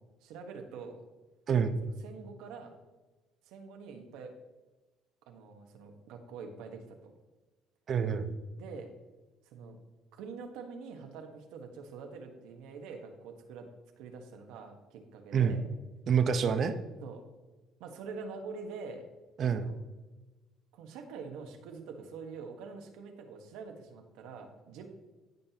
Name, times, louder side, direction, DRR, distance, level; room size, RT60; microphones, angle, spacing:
voice 1, 0.2-1.0 1.8-2.8 3.4-4.3 5.3-7.1 8.6-8.9 9.5-9.8 10.1-13.7 14.0-15.6 17.0-17.2 17.8-19.1 19.5-19.7 20.7-24.9, right 5 dB, 80° right, 4 dB, 1.2 m, -45 dB
voice 2, 1.5-1.8 7.9-8.3 15.3-15.6 16.1-16.7 19.4-19.7, right 7 dB, 50° right, 9 dB, 0.8 m, -27 dB
15.0 x 5.4 x 2.9 m, 1.2 s
cardioid pair, 100°, 0 cm